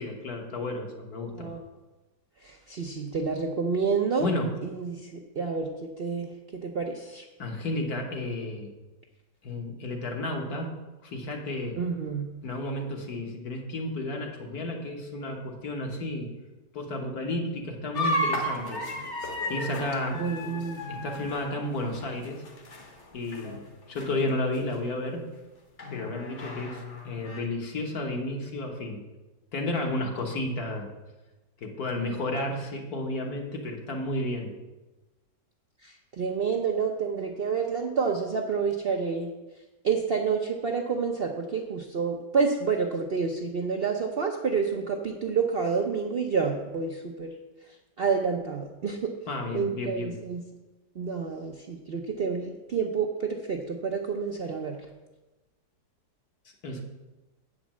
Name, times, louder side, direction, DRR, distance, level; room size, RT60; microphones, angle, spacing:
voice 1, 0.0-1.5 4.2-4.5 7.4-8.7 9.4-10.7 11.0-11.8 12.4-16.3 16.7-18.8 19.5-20.2 20.9-22.4 23.1-25.3 25.9-29.0 29.5-30.9 31.6-34.5 49.3-50.2 56.6-56.8, left 2 dB, 65° left, 2 dB, 1.7 m, -32 dB
voice 2, 2.4-4.3 4.6-7.2 11.8-12.3 20.1-21.1 35.8-39.3 39.8-47.3 48.0-49.1 49.5-50.4 51.0-54.8, right 5 dB, 55° right, 2 dB, 0.6 m, -29 dB
sound 1, 17.9-23.0 23.3-23.7 24.0-24.1 24.7-24.8 25.8-27.4, equal, 45° left, 1.3 m, -33 dB
8.1 x 5.2 x 7.4 m, 1.1 s
omnidirectional pair, 1.8 m